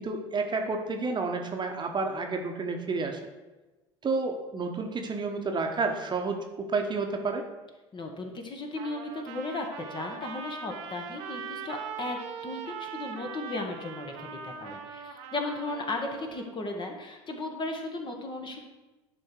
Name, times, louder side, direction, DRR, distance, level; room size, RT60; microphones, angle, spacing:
voice 1, 0.0-3.2 4.0-7.4, right 3 dB, 30° right, 3 dB, 1.1 m, -30 dB
voice 2, 7.9-18.6, left 2 dB, 30° left, 3 dB, 1.4 m, -36 dB
Trumpet, 8.8-16.6, right 6 dB, 65° right, 0.8 m, -41 dB
11.0 x 3.9 x 4.6 m, 1.1 s
figure-of-eight pair, 65°, 15 cm